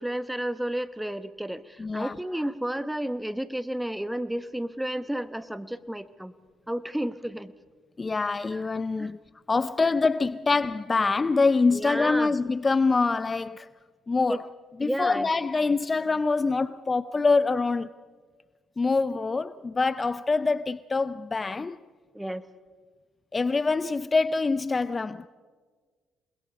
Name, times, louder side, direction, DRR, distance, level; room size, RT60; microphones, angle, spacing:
voice 1, 0.0-6.3 6.7-7.5 8.5-8.6 9.0-9.1 11.7-12.3 14.3-14.4 14.8-15.3 22.1-22.4, right 1 dB, 5° right, 1.1 m, -32 dB
voice 2, 1.8-2.2 8.0-9.2 9.5-13.7 14.1-14.4 14.8-17.9 18.8-21.8 23.3-25.3, left 4 dB, 30° left, 0.5 m, -25 dB
28.0 x 21.0 x 5.4 m
supercardioid pair, 60°, 0 cm